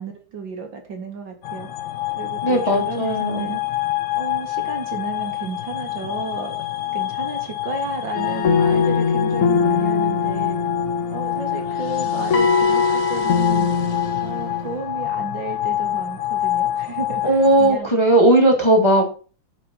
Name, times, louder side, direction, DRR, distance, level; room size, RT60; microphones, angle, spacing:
voice 1, 0.0-1.7 2.2-3.6 4.2-6.6 6.9-10.6 11.1-13.7 14.2-17.3 17.6-17.9, right 4 dB, 80° right, 4 dB, 2.8 m, -32 dB
sound 1, 1.4-17.8, left 14 dB, 70° left, 1.6 m, -27 dB
voice 2, 2.4-3.6 17.2-19.1, right 1 dB, 15° left, 1 dB, 2.0 m, -17 dB
sound 2, 8.1-14.8, left 5 dB, 45° left, 1.5 m, -21 dB
11.5 x 5.1 x 5.9 m, 0.37 s
omnidirectional pair, 2.0 m